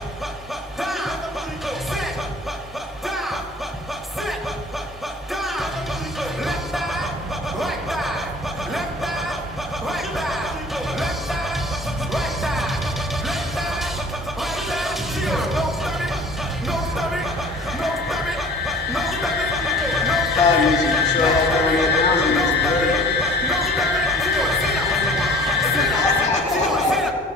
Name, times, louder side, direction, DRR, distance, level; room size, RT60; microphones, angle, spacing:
voice 1, 0.8-1.1 1.6-2.1 3.0-3.4 4.2-4.3 5.3-5.7 6.2-7.1 7.5-8.2 8.7-9.3 9.8-11.6 12.1-12.8 13.2-13.9 14.4-16.0 16.6-17.1 17.8-18.2 18.9-19.3 20.0-20.5 21.2-21.6 22.3-22.8 23.5-23.9 24.3-24.8 25.7-26.0 26.6-27.0, equal, ahead, 4.8 m, -25 dB
sound 1, 6.9-25.3, right 4 dB, 75° right, 2.6 m, -34 dB
sound 2, 17.2-26.3, left 6 dB, 85° left, 1.2 m, -24 dB
voice 2, 20.4-23.1 25.9-27.1, left 3 dB, 40° left, 2.7 m, -21 dB
voice 3, 24.8-27.1, right 2 dB, 30° right, 3.7 m, -31 dB
28.5 x 16.5 x 3.0 m
cardioid pair, 85°, 18 cm